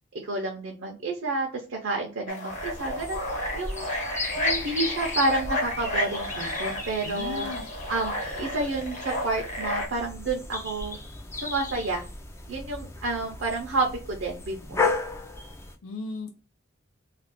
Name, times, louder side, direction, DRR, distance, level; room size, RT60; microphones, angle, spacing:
voice 1, 0.1-3.2 3.5-3.9 4.4-7.5 7.9-8.1 8.4-11.0 11.4-12.1 12.5-14.8, right 2 dB, 60° right, 0 dB, 0.6 m, -30 dB
sound 1, 2.3-9.9, left 1 dB, 35° left, 0.8 m, -32 dB
sound 2, 2.5-15.7, left 3 dB, 15° left, 0.3 m, -35 dB
voice 2, 7.0-7.6 15.8-16.3, left 3 dB, 80° left, 3 dB, 0.5 m, -36 dB
2.4 x 2.3 x 3.4 m, 0.34 s
head